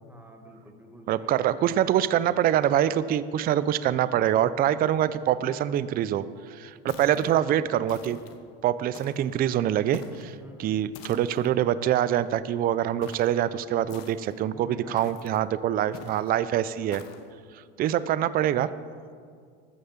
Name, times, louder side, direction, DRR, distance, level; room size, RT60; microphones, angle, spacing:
voice 1, 0.0-1.7 7.0-7.4 10.4-10.8 14.4-15.2, right 1 dB, 5° right, 3 dB, 1.7 m, -47 dB
voice 2, 1.1-6.2 6.5-8.2 8.6-17.0 17.8-18.7, right 11 dB, 30° right, 16 dB, 0.4 m, -25 dB
sound 1, 6.9-7.4 7.9-8.4 8.9-9.3 9.9-10.3 10.9-11.5 13.0-13.4 13.9-14.4 15.0-15.4 15.9-16.3 16.9-17.3, left 8 dB, 55° left, 1.2 m, -45 dB
14.5 x 6.5 x 7.2 m, 2.1 s
supercardioid pair, 115°, 31 cm